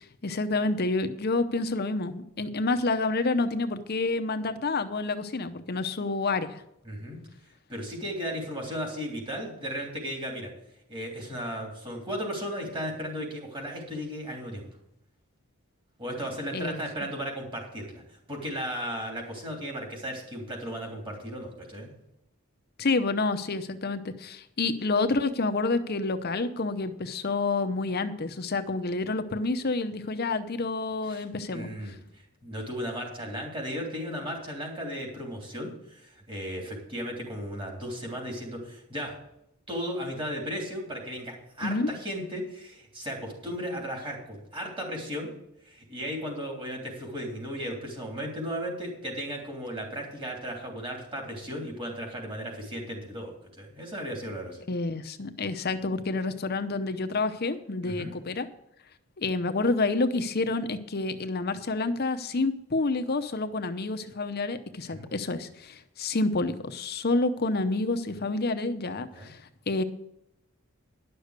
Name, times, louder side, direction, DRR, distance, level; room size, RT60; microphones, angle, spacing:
voice 1, 0.0-6.5 16.5-16.8 22.8-31.9 41.6-41.9 54.7-58.5 59.2-69.4 69.7-69.8, left 3 dB, 45° left, 9 dB, 0.7 m, -28 dB
voice 2, 6.8-7.2 7.7-10.5 10.9-14.7 16.0-21.9 31.0-31.2 31.5-39.2 39.7-45.3 45.6-54.6 57.8-58.1 64.8-65.1 69.1-69.3, equal, 25° right, 0 dB, 3.2 m, -35 dB
11.0 x 6.6 x 8.1 m, 0.81 s
head